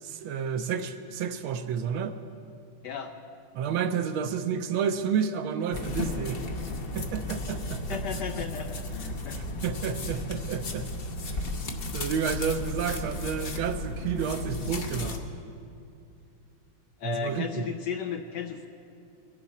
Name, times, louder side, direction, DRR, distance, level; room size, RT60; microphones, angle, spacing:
voice 1, 0.0-2.2 3.5-6.4 6.9-8.0 8.4-8.5 9.3-10.9 11.3-11.4 11.9-15.2 17.0-17.7, right 7 dB, 75° right, 8 dB, 1.5 m, -30 dB
voice 2, 2.8-3.1 7.9-9.4 17.0-18.7, left 7 dB, 70° left, 6 dB, 1.0 m, -34 dB
sound 1, 5.7-15.2, left 2 dB, 55° left, 0.6 m, -34 dB
22.0 x 11.0 x 4.2 m, 2.7 s
omnidirectional pair, 2.3 m